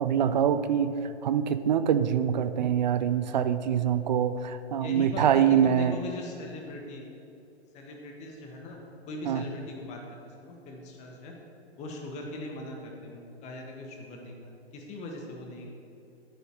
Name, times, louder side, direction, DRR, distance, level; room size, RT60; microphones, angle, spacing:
voice 1, 0.0-6.0 9.2-9.4, right 8 dB, 45° right, 12 dB, 0.5 m, -25 dB
voice 2, 4.8-7.0 7.7-8.8 9.1-10.0 10.4-11.3 11.8-14.3 14.7-15.7, left 2 dB, 20° left, 1 dB, 1.4 m, -40 dB
9.9 x 9.1 x 4.6 m, 2.7 s
figure-of-eight pair, 120°, 33 cm